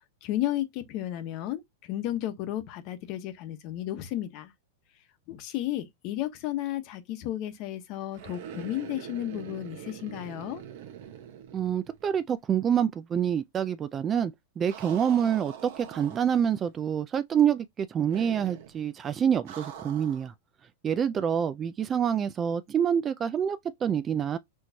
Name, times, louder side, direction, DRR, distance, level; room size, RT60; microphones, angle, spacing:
voice 1, 0.2-1.6 1.9-4.5 5.3-10.6, left 13 dB, 40° left, 1.0 m, -33 dB
sound 1, 8.1-12.3 12.5-12.6 14.7-16.7 18.1-18.8 19.5-20.3, right 9 dB, 55° right, 1.1 m, -44 dB
voice 2, 11.5-20.3 20.8-24.4, right 8 dB, 20° right, 0.4 m, -27 dB
6.2 x 3.1 x 2.8 m
supercardioid pair, 150°, 0 cm